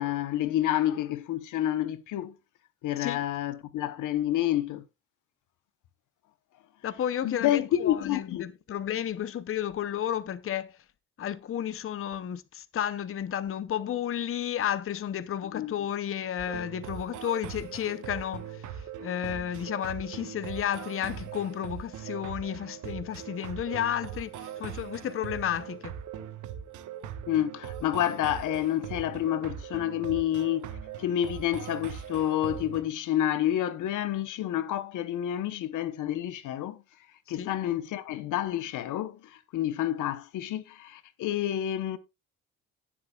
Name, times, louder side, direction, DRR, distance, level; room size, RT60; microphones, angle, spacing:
voice 1, 0.0-2.3 2.8-4.8 7.2-8.5 15.5-15.7 27.3-30.7 31.0-36.8 37.3-42.0, left 12 dB, 85° left, 1.1 m, -29 dB
voice 2, 6.8-10.7 11.2-18.6 19.0-25.9 37.4-37.5, left 10 dB, 45° left, 0.8 m, -32 dB
sound 1, 16.4-32.8, right 9 dB, 80° right, 1.3 m, -40 dB
17.0 x 7.4 x 2.4 m
cardioid pair, 90°, 30 cm